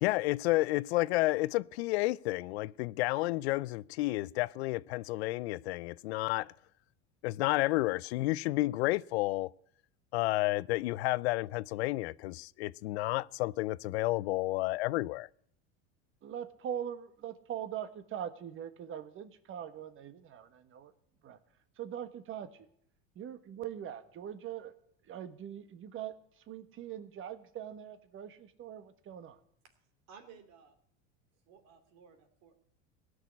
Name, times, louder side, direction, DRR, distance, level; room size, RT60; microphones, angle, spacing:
voice 1, 0.0-6.5 7.2-9.5 10.1-15.3, left 19 dB, 90° left, 0.5 m, -31 dB
voice 2, 16.2-20.9 21.2-21.4 21.8-22.7 23.1-24.7 25.0-29.4, right 9 dB, 40° right, 1.4 m, -42 dB
voice 3, 30.1-30.8 31.5-32.5, right 6 dB, 60° right, 2.9 m, -56 dB
17.0 x 6.6 x 9.6 m
supercardioid pair, 105°, 31 cm